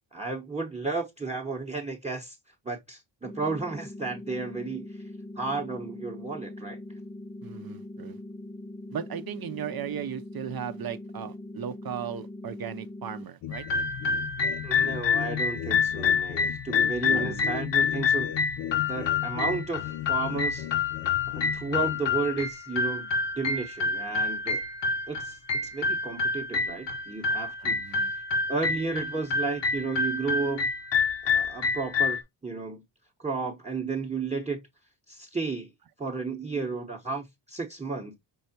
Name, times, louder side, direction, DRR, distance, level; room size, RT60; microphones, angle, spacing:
voice 1, 0.1-2.4 2.6-5.0 5.4-6.8 14.6-18.3 18.9-20.7 21.3-23.1 23.4-24.6 25.1-25.4 25.7-28.2 28.5-30.7 31.3-32.8 33.2-34.6 35.1-35.7 36.0-38.1, right 4 dB, 15° right, 0.9 m, -33 dB
sound 1, 3.2-13.2, left 1 dB, 20° left, 0.5 m, -42 dB
voice 2, 7.4-8.2 8.9-13.7 17.1-17.5 27.6-28.1, right 8 dB, 45° right, 0.6 m, -36 dB
sound 2, 13.4-22.0, left 12 dB, 85° left, 0.6 m, -37 dB
sound 3, 13.5-32.2, left 5 dB, 60° left, 0.9 m, -28 dB
5.5 x 3.3 x 2.7 m
cardioid pair, 85°, 49 cm